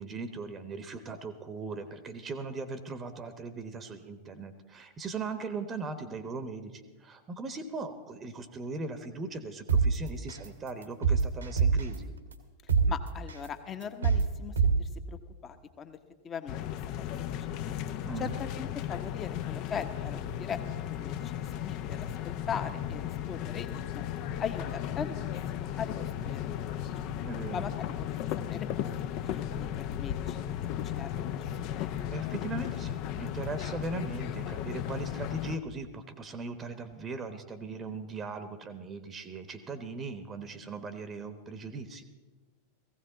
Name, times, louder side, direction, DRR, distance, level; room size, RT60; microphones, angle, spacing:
voice 1, 0.0-12.1 18.0-18.3 27.2-27.6 32.1-42.0, right 3 dB, 25° right, 11 dB, 1.0 m, -39 dB
sound 1, 9.7-9.8 10.3-10.5 10.8-11.9 12.3-12.4 12.7-12.8 13.3-13.5 13.8-14.2 14.6-14.7, right 6 dB, 75° right, 1.4 m, -23 dB
voice 2, 12.9-16.0 16.2-16.5 17.4-17.8 18.2-20.6 20.9-21.3 21.6-24.0 24.4-25.1 25.5-26.6 27.5-28.1 28.5-28.9 29.3-31.2 31.6-31.9, left 7 dB, 25° left, 9 dB, 1.1 m, -40 dB
sound 2, 16.5-35.6, left 10 dB, 40° left, 0.6 m, -35 dB
16.5 x 16.0 x 4.0 m, 1.2 s
figure-of-eight pair, 90°, 0 cm